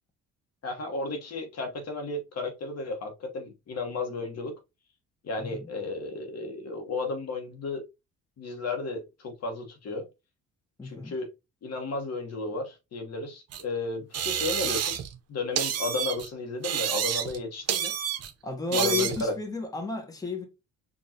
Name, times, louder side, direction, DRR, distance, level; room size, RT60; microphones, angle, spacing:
voice 1, 0.6-4.5 5.2-7.9 8.4-10.1 10.8-11.3 11.6-15.0 15.3-17.9 18.7-19.3, left 3 dB, 55° left, 1.2 m, -33 dB
voice 2, 5.4-5.7 10.8-11.1 18.4-20.4, left 4 dB, 10° left, 1.0 m, -32 dB
sound 1, 13.5-13.6 14.1-15.2 15.6-16.3 16.6-17.4 17.7-18.3 18.7-19.3, right 9 dB, 55° right, 0.7 m, -29 dB
4.9 x 2.5 x 2.7 m
cardioid pair, 90°, 30 cm